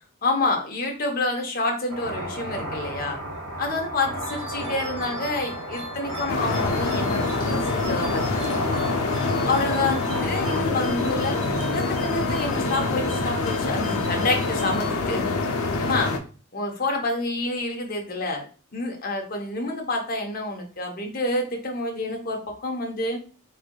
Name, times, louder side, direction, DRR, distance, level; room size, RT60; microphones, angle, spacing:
voice 1, 0.2-3.2 3.6-8.7 9.4-11.4 11.7-15.3 15.8-16.1 16.5-18.5 18.7-23.2, left 2 dB, 40° left, 1 dB, 0.7 m, -28 dB
sound 1, 1.9-10.6, right 1 dB, 75° right, 1.8 m, -34 dB
sound 2, 4.2-15.4, left 1 dB, 25° right, 1.6 m, -39 dB
sound 3, 6.3-16.2, left 3 dB, 85° left, 0.5 m, -26 dB
3.5 x 3.3 x 2.2 m, 0.38 s
head